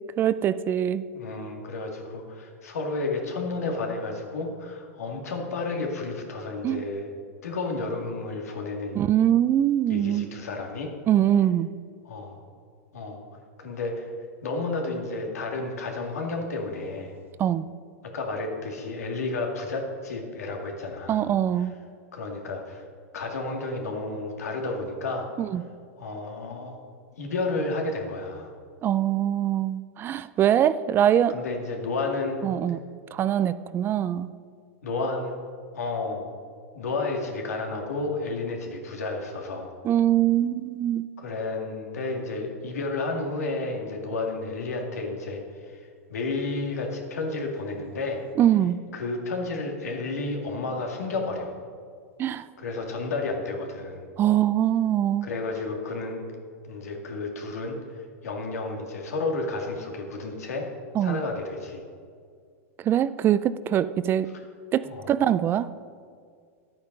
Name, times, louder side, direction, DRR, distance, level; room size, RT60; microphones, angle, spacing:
voice 1, 0.2-1.1 6.6-6.8 9.0-10.3 11.1-11.7 17.4-17.7 21.1-21.7 25.4-25.6 28.8-31.4 32.4-32.8 33.1-34.3 39.8-41.1 48.4-48.8 52.2-52.5 54.2-55.3 60.9-61.2 62.8-64.3 64.7-65.7, right 11 dB, 25° right, 15 dB, 0.4 m, -23 dB
voice 2, 1.1-7.1 7.4-9.1 9.9-10.9 12.0-12.4 12.9-13.2 13.6-14.1 14.4-17.2 18.0-21.3 22.1-22.8 23.1-25.3 26.0-26.8 27.2-28.5 31.3-32.4 34.8-35.4 35.7-36.3 36.7-39.7 41.2-48.3 48.9-51.6 52.6-54.0 55.2-56.2 56.6-60.7 61.0-61.8 64.8-65.1, left 3 dB, 90° left, 2 dB, 2.2 m, -31 dB
11.5 x 8.8 x 5.4 m, 2.1 s
hypercardioid pair, 125°, 8 cm